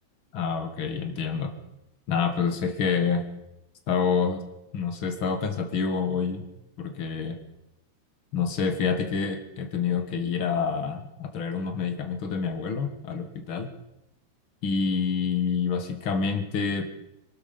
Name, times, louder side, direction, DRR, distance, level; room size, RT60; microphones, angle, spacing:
voice 1, 0.3-1.5 2.1-3.3 3.9-4.4 4.7-6.4 6.8-7.4 8.3-13.7 14.6-16.9, left 5 dB, 75° left, 8 dB, 2.4 m, -27 dB
21.5 x 12.5 x 5.3 m, 0.90 s
omnidirectional pair, 2.3 m